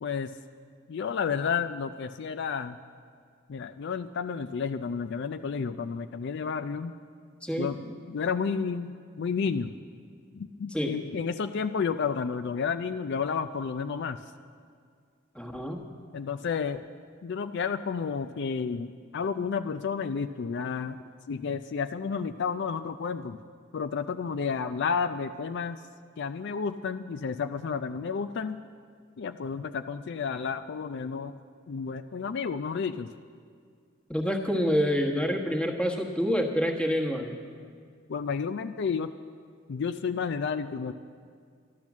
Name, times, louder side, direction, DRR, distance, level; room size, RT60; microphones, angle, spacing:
voice 1, 0.0-0.3 0.9-2.8 3.5-6.9 7.6-7.8 8.1-9.7 10.4-14.2 16.1-16.8 17.2-23.4 23.7-25.8 26.2-28.6 29.2-31.4 31.7-33.1 38.1-39.1 39.7-40.9, left 6 dB, 60° left, 9 dB, 0.4 m, -31 dB
voice 2, 7.4-7.9 10.7-10.9 15.3-15.8 34.1-37.4, equal, 5° left, 1 dB, 1.3 m, -27 dB
12.0 x 12.0 x 7.2 m, 2.1 s
head